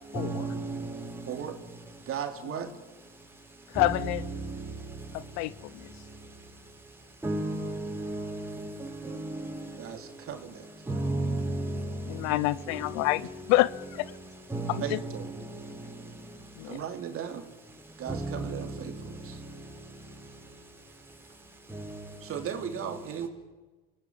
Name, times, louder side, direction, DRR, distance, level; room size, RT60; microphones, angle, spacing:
voice 1, 0.2-0.8 7.2-7.6 8.0-8.2 10.9-11.6 14.5-14.7, right 2 dB, 5° right, 6.3 m, -30 dB
voice 2, 1.2-1.6 2.0-2.7 9.8-10.7 12.7-12.8 14.8-15.3 16.6-17.5 18.0-19.4 22.2-23.3, right 8 dB, 45° right, 3.0 m, -37 dB
voice 3, 3.7-4.2 5.1-5.5 12.1-14.1 14.7-15.0 16.6-16.8, left 18 dB, 65° left, 0.7 m, -27 dB
27.5 x 18.5 x 7.6 m
supercardioid pair, 95°, 30 cm